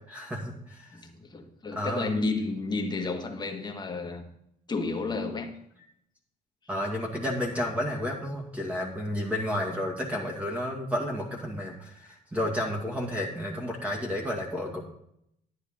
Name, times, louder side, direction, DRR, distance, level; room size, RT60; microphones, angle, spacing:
voice 1, 0.1-1.0 1.7-2.1 6.7-14.8, left 1 dB, 10° right, -1 dB, 2.1 m, -31 dB
voice 2, 0.9-4.2 4.7-5.5, left 3 dB, 25° left, 3 dB, 1.6 m, -31 dB
11.5 x 9.4 x 3.8 m, 0.74 s
cardioid pair, 110°, 17 cm